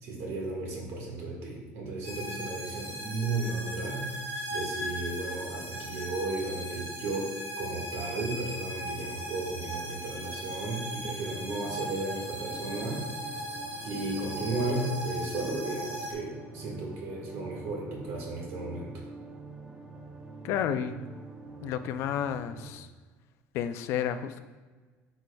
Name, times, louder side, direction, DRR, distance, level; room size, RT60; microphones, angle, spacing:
voice 1, 0.0-4.0 4.5-13.0 13.8-18.9, right 2 dB, 60° right, -1 dB, 1.7 m, -34 dB
sound 1, 2.0-16.1, equal, 35° right, 1.3 m, -38 dB
sound 2, 11.1-22.7, right 3 dB, 15° right, 0.5 m, -45 dB
voice 2, 20.4-20.9 21.6-22.9 23.5-24.4, left 9 dB, 55° left, 11 dB, 0.4 m, -31 dB
9.1 x 4.6 x 2.3 m, 1.3 s
cardioid pair, 170°, 5 cm